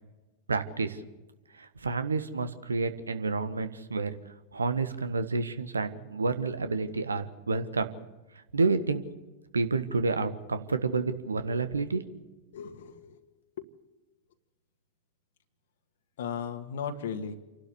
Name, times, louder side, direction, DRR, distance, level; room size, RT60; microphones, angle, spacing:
voice 1, 0.5-1.0 1.5-4.1 4.5-7.9 8.5-9.0 9.5-12.2, right 4 dB, 75° right, 10 dB, 1.5 m, -29 dB
voice 2, 12.5-13.2 13.6-13.7 16.2-17.4, left 7 dB, 60° left, 6 dB, 1.7 m, -36 dB
29.0 x 12.0 x 8.2 m, 1.1 s
figure-of-eight pair, 90°, 0 cm